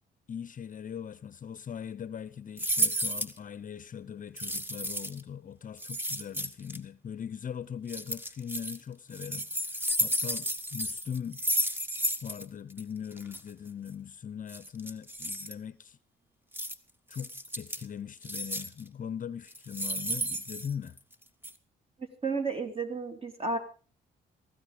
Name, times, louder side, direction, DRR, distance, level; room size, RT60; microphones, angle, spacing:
voice 1, 0.3-11.4 12.2-16.0 17.1-21.0, left 8 dB, 40° left, 0.7 m, -40 dB
sound 1, 2.6-3.4 4.4-5.2 5.8-6.8 7.9-8.8 9.1-12.4 12.7-12.8 13.1-13.4 14.5-15.5 16.5-16.7 17.1-17.8 18.2-18.8 19.5-21.1 21.4-21.5, equal, 10° right, 1.4 m, -32 dB
voice 2, 22.0-23.6, right 3 dB, 30° right, 3.0 m, -32 dB
16.5 x 15.5 x 5.0 m
cardioid pair, 90°, 20 cm